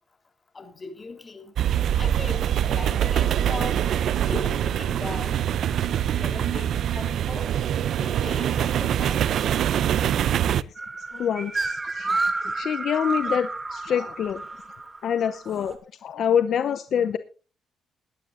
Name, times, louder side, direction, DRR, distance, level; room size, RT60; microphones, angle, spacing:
voice 1, 0.5-1.5 2.0-3.8 4.2-5.4 5.8-7.5 8.0-9.2, left 3 dB, 30° left, 6 dB, 3.8 m, -38 dB
sound 1, 1.6-10.6, right 10 dB, 70° right, 0.5 m, -24 dB
sound 2, 10.8-15.7, right 3 dB, 25° right, 2.6 m, -30 dB
voice 2, 11.1-14.4 15.0-17.2, left 8 dB, 65° left, 11 dB, 0.7 m, -26 dB
20.5 x 12.0 x 2.6 m, 0.35 s
cardioid pair, 90°, 0 cm